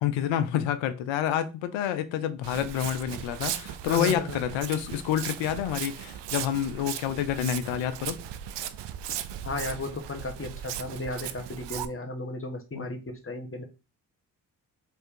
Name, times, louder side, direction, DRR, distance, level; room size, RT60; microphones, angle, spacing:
voice 1, 0.0-8.2 12.7-12.9, left 10 dB, 85° left, 0.7 m, -28 dB
Walk footsteps, 2.4-11.9, right 11 dB, 65° right, 0.6 m, -37 dB
voice 2, 3.9-4.4 9.4-13.6, left 2 dB, 30° left, 1.4 m, -34 dB
3.4 x 3.2 x 4.7 m
hypercardioid pair, 40°, 45 cm